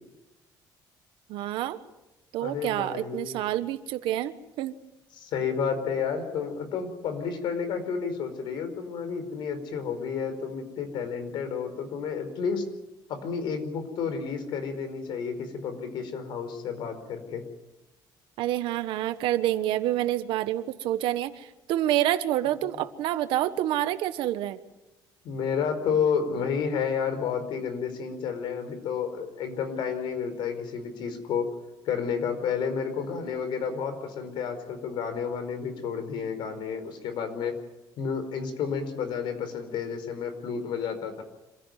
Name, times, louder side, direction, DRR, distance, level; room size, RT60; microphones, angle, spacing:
voice 1, 1.3-1.8 2.3-4.8 18.4-24.6, right 13 dB, 85° right, 11 dB, 1.4 m, -28 dB
voice 2, 2.4-3.4 5.2-12.6 13.1-17.4 22.7-22.8 25.2-31.5 31.8-37.5 38.0-41.2, left 6 dB, 75° left, 9 dB, 4.7 m, -31 dB
27.0 x 16.0 x 9.5 m, 1.0 s
cardioid pair, 135°, 8 cm